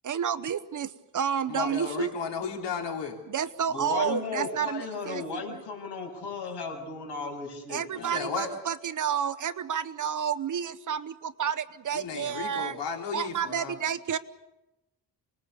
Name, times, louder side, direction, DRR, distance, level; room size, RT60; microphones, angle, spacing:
voice 1, 0.0-2.1 3.3-5.6 7.7-12.8 13.1-14.2, right 8 dB, 45° right, 13 dB, 0.9 m, -30 dB
voice 2, 1.5-3.2 8.0-8.5 11.9-13.7, left 6 dB, 90° left, 1 dB, 3.7 m, -34 dB
voice 3, 3.7-8.3, left 4 dB, 70° left, 1 dB, 7.7 m, -35 dB
27.5 x 20.5 x 6.9 m, 0.96 s
wide cardioid pair, 175°, 42 cm